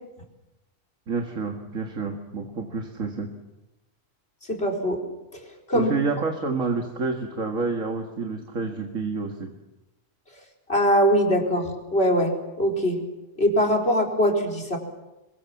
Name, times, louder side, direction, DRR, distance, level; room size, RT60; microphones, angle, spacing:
voice 1, 1.1-3.3 5.7-9.5, right 4 dB, 85° right, 3 dB, 2.3 m, -28 dB
voice 2, 4.5-5.0 5.7-5.9 10.7-13.0 13.4-14.8, equal, 50° left, 4 dB, 4.6 m, -22 dB
27.5 x 23.0 x 7.3 m, 1.0 s
omnidirectional pair, 1.3 m